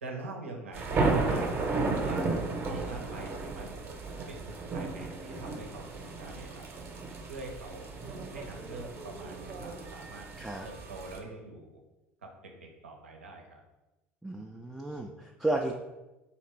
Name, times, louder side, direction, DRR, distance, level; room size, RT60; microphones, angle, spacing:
voice 1, 0.0-2.3 2.6-3.9 4.3-6.7 7.2-7.9 8.3-10.3 10.6-11.8 12.2-13.6, right 2 dB, 80° right, 1 dB, 0.7 m, -44 dB
sound 1, 0.7-11.2, right 3 dB, 35° right, 0.8 m, -34 dB
voice 2, 14.2-15.7, right 2 dB, 5° right, 0 dB, 0.4 m, -33 dB
3.2 x 2.9 x 4.4 m, 1.0 s
figure-of-eight pair, 70°, 7 cm